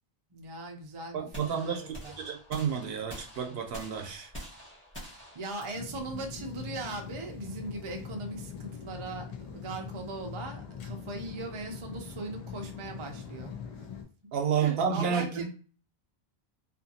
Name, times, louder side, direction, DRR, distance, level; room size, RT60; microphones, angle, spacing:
voice 1, 0.3-2.1 5.3-13.5 14.6-15.5, right 2 dB, 40° right, 3 dB, 0.5 m, -39 dB
voice 2, 1.1-4.3 14.3-15.5, right 7 dB, 70° right, 4 dB, 0.8 m, -30 dB
sound 1, 1.3-7.4, equal, 10° left, 1.2 m, -47 dB
sound 2, 5.7-14.0, left 6 dB, 50° left, 0.5 m, -42 dB
2.5 x 2.5 x 2.7 m, 0.39 s
omnidirectional pair, 1.0 m